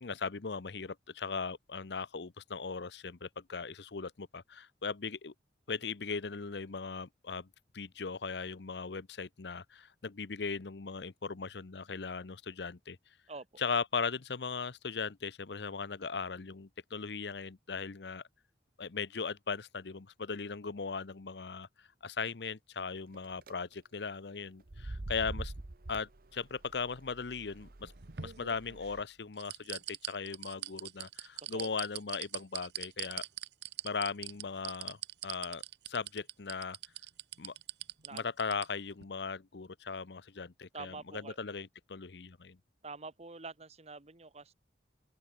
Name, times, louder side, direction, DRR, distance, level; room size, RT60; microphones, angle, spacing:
voice 1, 0.0-5.3 5.7-7.5 7.7-13.0 13.6-18.2 18.8-25.5 25.9-27.9 28.2-33.3 33.8-35.0 35.2-35.6 35.9-36.8 37.4-37.6 38.1-42.6, left 5 dB, 70° left, 0.8 m, -38 dB
sound 1, 23.1-23.5 24.6-29.0, right 1 dB, 55° right, 1.1 m, -45 dB
sound 2, 27.6-28.9 29.4-38.7 39.0-39.1, right 13 dB, 75° right, 1.3 m, -41 dB
voice 2, 40.7-41.4 42.8-44.5, right 3 dB, 35° right, 1.4 m, -46 dB
open air
head